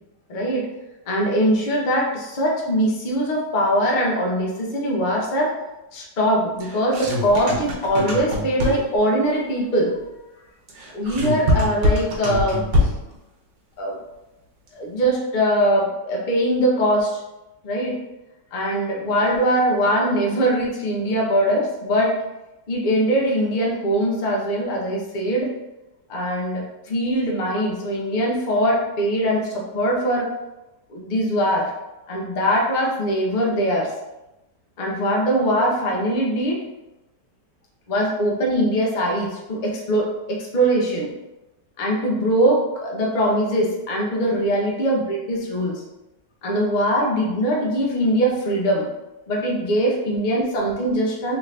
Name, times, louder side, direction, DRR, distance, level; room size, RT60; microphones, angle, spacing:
voice 1, 0.3-0.7 1.1-5.5 5.9-10.0 10.9-12.9 13.8-14.0 14.7-17.2 17.6-18.0 18.5-22.2 22.7-25.5 26.1-30.3 30.9-31.7 32.1-33.9 34.8-36.6 37.9-41.1 41.8-45.8 46.4-48.9 49.3-51.4, equal, 60° left, -2 dB, 0.5 m, -22 dB
sound 1, 6.6-9.0 10.7-13.1, left 1 dB, 70° right, 1.3 m, -23 dB
3.5 x 2.6 x 3.2 m, 0.98 s
omnidirectional pair, 1.9 m